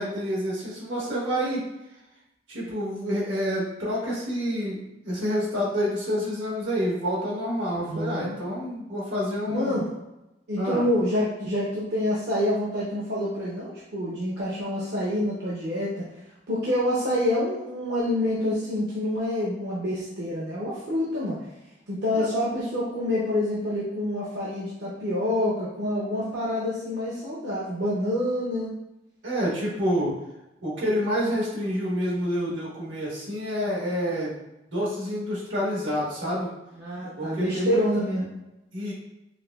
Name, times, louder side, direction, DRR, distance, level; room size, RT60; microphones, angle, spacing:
voice 1, 0.0-1.6 2.5-9.7 10.6-10.8 22.1-22.3 29.2-30.1 30.6-34.4 34.7-36.5 37.2-37.8 38.7-38.9, equal, 85° right, -5 dB, 1.4 m, -28 dB
voice 2, 7.9-8.3 9.5-9.9 10.5-16.0 16.5-21.4 21.9-28.7 36.8-38.2, left 1 dB, 65° right, -7 dB, 0.7 m, -27 dB
4.7 x 2.1 x 2.3 m, 0.94 s
head